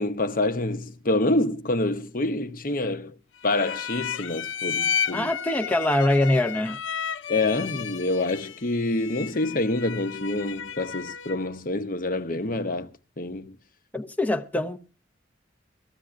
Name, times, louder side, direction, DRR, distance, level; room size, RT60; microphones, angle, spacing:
voice 1, 0.0-3.1 3.4-5.3 7.3-12.9 13.2-13.5, left 2 dB, 45° left, 0.9 m, -27 dB
sound 1, 3.4-11.5, left 7 dB, 85° left, 0.5 m, -32 dB
voice 2, 5.1-6.8 13.9-14.8, left 1 dB, 10° left, 0.6 m, -23 dB
19.5 x 14.5 x 2.5 m
head